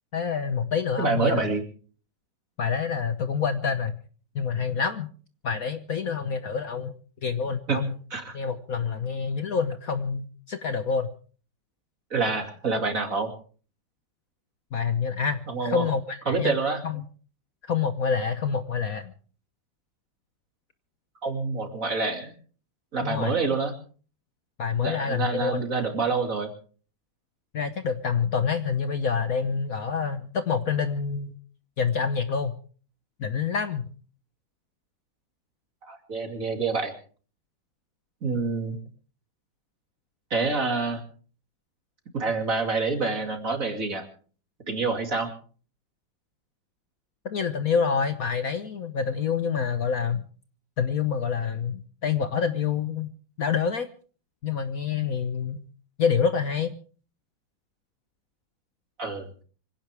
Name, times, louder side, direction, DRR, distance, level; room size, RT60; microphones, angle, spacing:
voice 1, 0.1-1.4 2.6-4.0 4.3-5.1 5.4-7.9 8.3-11.1 14.7-16.5 16.8-17.0 17.7-19.1 23.0-23.3 24.6-25.6 27.5-31.4 31.8-32.6 33.2-33.9 47.3-50.3 50.8-53.1 53.4-53.9 54.4-55.6 56.0-56.7, left 6 dB, 55° left, 9 dB, 1.3 m, -27 dB
voice 2, 1.0-1.6 7.7-7.8 8.1-8.4 12.1-13.3 15.5-15.8 16.3-16.8 21.2-22.3 22.9-23.7 24.8-26.5 35.9-36.9 38.2-38.8 40.3-41.0 42.1-44.1 44.7-45.3 59.0-59.3, right 4 dB, 40° right, 4 dB, 3.0 m, -27 dB
25.0 x 16.5 x 3.5 m, 0.42 s
omnidirectional pair, 2.1 m